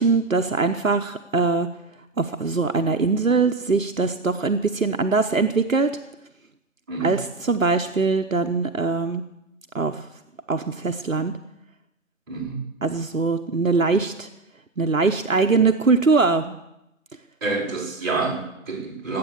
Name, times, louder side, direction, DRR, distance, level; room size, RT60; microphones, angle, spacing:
voice 1, 0.0-1.7 2.2-5.9 7.0-9.2 9.7-10.0 10.5-11.4 12.8-14.3 14.8-16.6, right 4 dB, 70° right, 6 dB, 1.1 m, -22 dB
voice 2, 6.9-7.2 12.3-12.6 17.4-19.2, right 3 dB, 15° right, -9 dB, 4.6 m, -28 dB
19.0 x 8.7 x 7.1 m, 0.87 s
figure-of-eight pair, 165°, 41 cm